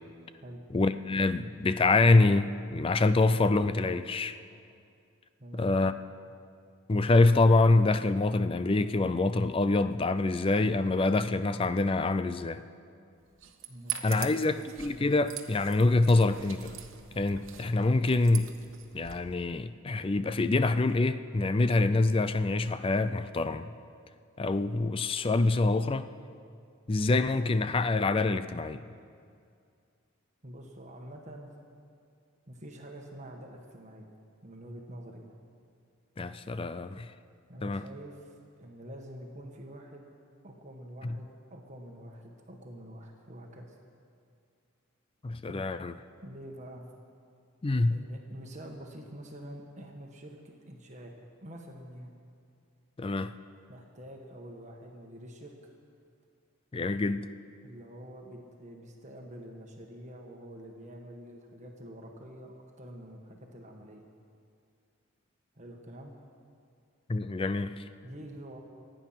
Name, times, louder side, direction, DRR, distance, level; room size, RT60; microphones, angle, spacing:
voice 1, 0.7-4.4 5.5-6.0 6.9-12.6 14.0-16.7 17.2-18.5 18.9-23.7 24.4-26.1 26.9-28.8 36.2-37.1 37.6-37.8 41.0-41.2 45.2-45.9 47.6-48.0 53.0-53.3 56.7-57.3 67.1-67.8, left 2 dB, 25° left, 12 dB, 0.4 m, -26 dB
sound 1, 13.3-19.2, right 10 dB, 65° right, 1.2 m, -43 dB
voice 2, 13.7-14.4 30.4-31.5 32.5-34.1 34.4-35.3 37.5-40.0 40.4-43.7 45.5-45.7 46.2-46.9 47.9-51.1 51.4-52.1 53.7-55.7 57.6-64.0 65.5-66.2 68.0-68.6, equal, 35° right, 1 dB, 1.4 m, -46 dB
26.0 x 9.2 x 5.8 m, 2.3 s
head